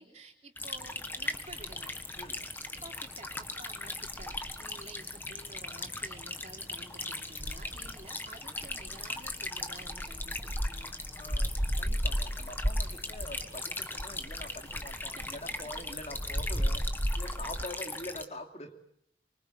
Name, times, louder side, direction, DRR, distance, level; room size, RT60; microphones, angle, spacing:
voice 1, 0.0-2.2 2.8-11.0 13.0-13.1 15.0-15.3 17.2-17.5, right 2 dB, 40° right, 2 dB, 3.4 m, -52 dB
sound 1, 0.6-18.3, left 2 dB, 10° left, 1.4 m, -40 dB
sound 2, 0.8-17.6, equal, 15° right, 1.1 m, -36 dB
voice 2, 11.2-16.8 17.2-18.8, left 1 dB, 40° left, 4 dB, 2.7 m, -44 dB
25.0 x 24.5 x 8.1 m, 0.72 s
head